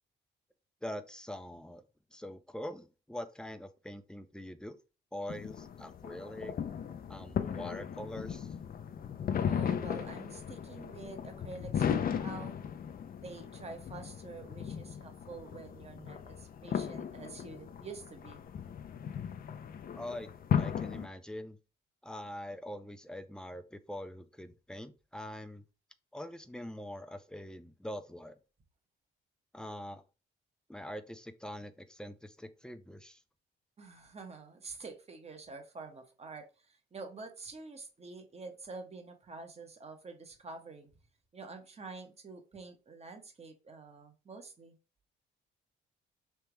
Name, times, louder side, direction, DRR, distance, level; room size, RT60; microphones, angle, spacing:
voice 1, 0.8-1.8 2.1-4.8 5.1-6.5 7.1-8.5 20.0-20.3 20.6-21.6 22.0-25.6 26.1-28.4 29.5-30.0 30.7-33.2, left 1 dB, 5° left, 0.5 m, -43 dB
sound 1, 5.3-21.1, left 8 dB, 45° left, 0.6 m, -36 dB
voice 2, 9.3-12.6 13.1-18.4 33.8-40.9 41.3-44.7, right 4 dB, 30° right, 1.2 m, -47 dB
3.4 x 2.9 x 4.5 m
cardioid pair, 90°, 20 cm